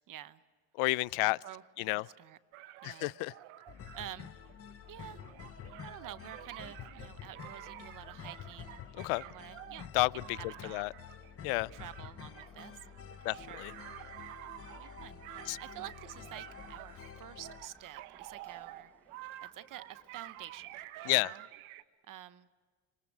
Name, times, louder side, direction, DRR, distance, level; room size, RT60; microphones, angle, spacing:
voice 1, 0.1-0.4 1.2-2.4 2.8-3.2 3.9-4.3 4.9-5.2 5.8-8.8 9.2-9.9 10.6-10.9 11.7-12.8 13.3-13.6 14.7-18.9 19.4-21.4 22.0-22.5, right 12 dB, 40° right, 0.8 m, -49 dB
voice 2, 0.7-1.4 1.8-2.1 2.8-3.3 8.9-9.2 9.9-10.9 11.4-11.7 13.2-13.7 15.5-15.6 21.0-21.3, left 23 dB, 85° left, 0.6 m, -31 dB
sound 1, 2.5-21.8, right 15 dB, 75° right, 1.1 m, -50 dB
sound 2, 3.7-17.7, left 8 dB, 30° left, 0.8 m, -49 dB
sound 3, 12.1-20.9, left 1 dB, 5° left, 1.5 m, -67 dB
26.5 x 23.0 x 6.2 m
cardioid pair, 160°, 49 cm